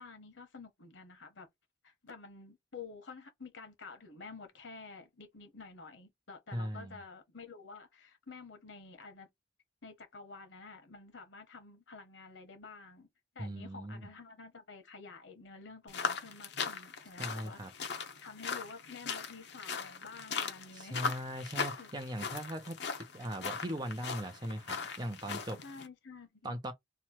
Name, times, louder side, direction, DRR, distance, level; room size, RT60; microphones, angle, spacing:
voice 1, 0.0-1.5 1.8-9.3 9.8-13.1 13.3-21.9 25.6-26.5, left 4 dB, 90° left, 1.0 m, -50 dB
voice 2, 6.5-7.0 13.4-14.1 17.2-17.7 20.7-22.8 23.1-25.6 26.4-26.7, equal, 25° right, 0.6 m, -39 dB
sound 1, 15.9-25.9, left 5 dB, 70° left, 0.7 m, -39 dB
3.0 x 2.3 x 4.3 m
head